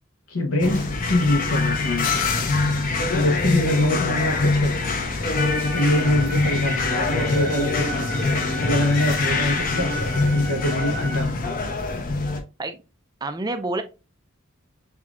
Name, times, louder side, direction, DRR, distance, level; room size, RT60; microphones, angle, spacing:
voice 1, 0.3-2.1 3.1-4.8 5.1-8.1 8.6-9.9 10.2-11.6, left 1 dB, 80° left, 0.7 m, -24 dB
sound 1, 0.6-12.4, left 3 dB, 40° left, 0.6 m, -24 dB
sound 2, 5.4-11.3, right 2 dB, 10° left, 1.1 m, -35 dB
voice 2, 13.2-13.8, right 2 dB, 20° right, 0.3 m, -27 dB
5.6 x 2.3 x 2.3 m
head